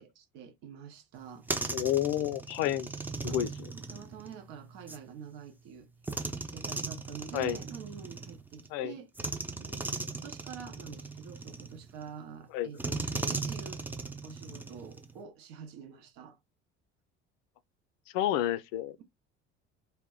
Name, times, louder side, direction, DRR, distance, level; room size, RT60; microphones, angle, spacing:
voice 1, 0.0-1.5 2.6-2.7 3.3-3.4 3.7-5.9 6.5-9.1 9.6-13.8 14.2-16.4, right 7 dB, 70° right, 0.7 m, -47 dB
sound 1, 1.2-5.0 6.0-8.7 9.2-12.1 12.8-15.2, right 3 dB, 5° right, 0.4 m, -38 dB
voice 2, 1.7-2.9 3.2-3.5 7.3-7.6 8.7-8.9 12.5-12.7 18.1-19.0, left 12 dB, 70° left, 0.5 m, -29 dB
2.1 x 2.0 x 3.5 m
hypercardioid pair, 65°, 34 cm